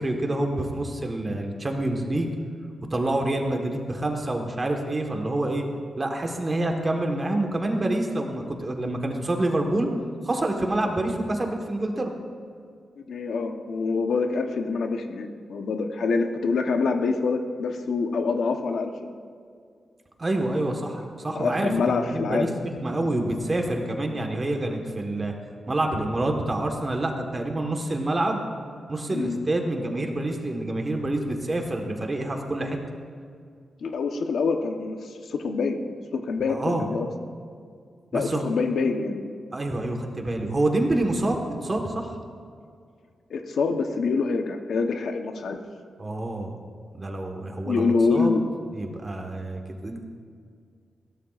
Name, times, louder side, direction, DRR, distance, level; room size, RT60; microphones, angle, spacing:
voice 1, 0.0-2.3 2.9-5.6 6.0-9.9 10.2-12.1 20.2-22.5 22.8-25.3 25.7-28.4 28.9-32.8 36.5-36.8 38.1-38.4 39.5-42.1 46.0-46.6 47.0-48.3 48.7-50.1, right 1 dB, 25° right, 2 dB, 1.4 m, -27 dB
voice 2, 13.1-19.1 21.3-22.6 29.1-29.4 33.8-37.1 38.1-39.4 43.3-45.6 47.6-48.4, left 4 dB, 75° left, 5 dB, 1.0 m, -26 dB
21.0 x 17.0 x 2.5 m, 2.2 s
wide cardioid pair, 175°, 0 cm